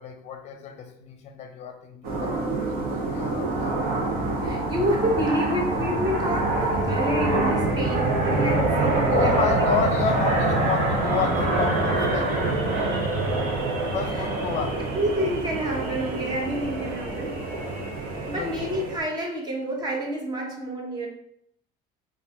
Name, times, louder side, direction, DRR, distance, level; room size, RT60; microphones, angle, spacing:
voice 1, 0.0-3.9 9.1-12.4 13.9-14.9 18.2-18.6, left 6 dB, 40° left, 0.6 m, -30 dB
sound 1, 2.0-19.0, right 2 dB, 60° right, 1.0 m, -25 dB
voice 2, 4.4-9.4 14.1-14.3 14.9-17.4 18.3-21.1, equal, 25° right, 0.9 m, -29 dB
3.9 x 2.6 x 4.0 m
cardioid pair, 145°, 17 cm